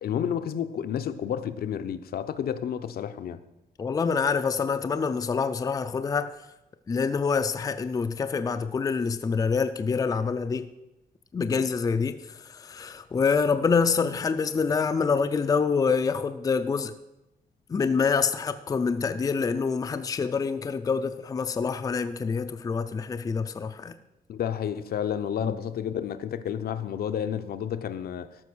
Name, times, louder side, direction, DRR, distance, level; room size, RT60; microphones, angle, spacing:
voice 1, 0.0-3.4 24.3-28.3, left 9 dB, 70° left, 0.7 m, -30 dB
voice 2, 3.8-6.3 6.9-10.7 11.3-16.9 17.7-23.9 25.4-25.5, left 5 dB, 20° left, 0.4 m, -26 dB
13.5 x 5.9 x 6.2 m
wide cardioid pair, 170°, 16 cm